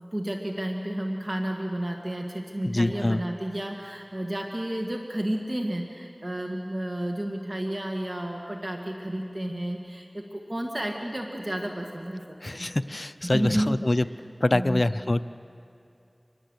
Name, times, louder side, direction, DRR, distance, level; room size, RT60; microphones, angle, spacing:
voice 1, 0.0-12.7 13.2-13.8 14.5-14.8, right 1 dB, 45° right, 2 dB, 1.8 m, -31 dB
voice 2, 2.6-3.2 12.4-14.1 14.4-15.2, left 1 dB, 50° left, 13 dB, 0.5 m, -25 dB
26.0 x 20.5 x 8.1 m, 2.6 s
wide cardioid pair, 45°, 0 cm